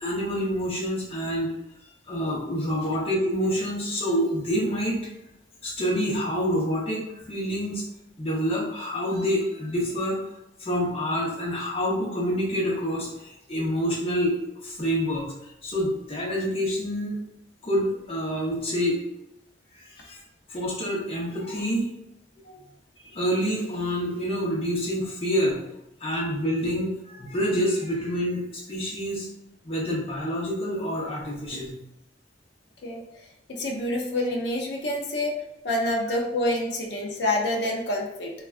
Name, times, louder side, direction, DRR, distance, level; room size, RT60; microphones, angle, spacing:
voice 1, 0.0-1.5 2.1-5.0 5.6-7.8 8.2-10.2 10.6-15.3 15.6-17.2 17.6-19.0 19.7-20.2 20.5-21.9 22.4-22.6 23.0-25.6 26.0-29.3 29.6-31.8, equal, 30° left, -4 dB, 0.8 m, -27 dB
voice 2, 33.5-35.3 35.6-38.3, left 1 dB, 70° left, 0 dB, 0.5 m, -27 dB
3.4 x 2.3 x 2.3 m, 0.85 s
head